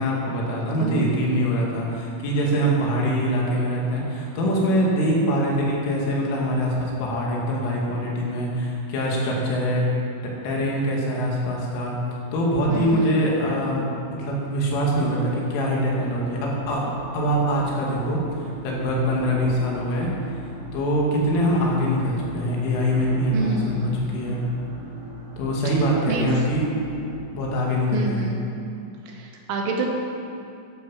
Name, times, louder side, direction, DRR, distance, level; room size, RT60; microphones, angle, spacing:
voice 1, 0.0-9.9 10.2-12.0 12.3-13.8 14.1-16.9 17.1-18.2 18.6-20.4 20.7-24.4 25.4-26.7 27.3-28.3, equal, 80° left, -3 dB, 4.7 m, -23 dB
voice 2, 12.7-13.1 23.3-23.9 26.1-26.3 27.9-28.3 29.1-29.9, right 2 dB, 85° right, 0 dB, 4.2 m, -27 dB
sound 1, 15.2-27.1, equal, 30° right, 3.5 m, -40 dB
13.5 x 11.0 x 5.7 m, 2.6 s
omnidirectional pair, 5.5 m